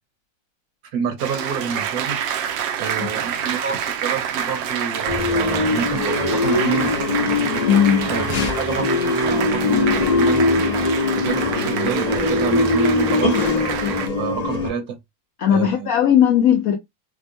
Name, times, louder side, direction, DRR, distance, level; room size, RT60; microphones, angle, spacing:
voice 1, 0.9-2.2 2.8-6.9 8.1-10.5 11.2-15.0 15.5-15.9, right 7 dB, 65° right, 1.2 m, -28 dB
Applause, 1.2-14.1, right 8 dB, 85° right, 1.3 m, -27 dB
sound 1, 5.1-14.7, left 3 dB, 55° left, 0.4 m, -21 dB
voice 2, 7.7-8.1 15.4-16.8, left 9 dB, 70° left, 0.8 m, -17 dB
5.2 x 2.1 x 2.6 m
omnidirectional pair, 2.0 m